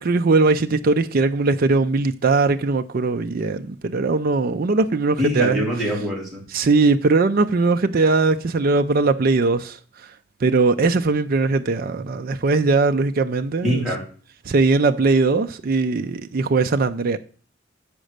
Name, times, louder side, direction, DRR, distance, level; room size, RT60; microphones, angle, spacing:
voice 1, 0.0-5.7 6.5-9.8 10.4-13.8 14.5-17.2, right 3 dB, 50° right, 0.5 m, -20 dB
voice 2, 5.2-6.4 13.6-14.0, equal, ahead, 2.8 m, -23 dB
7.5 x 5.1 x 6.5 m
head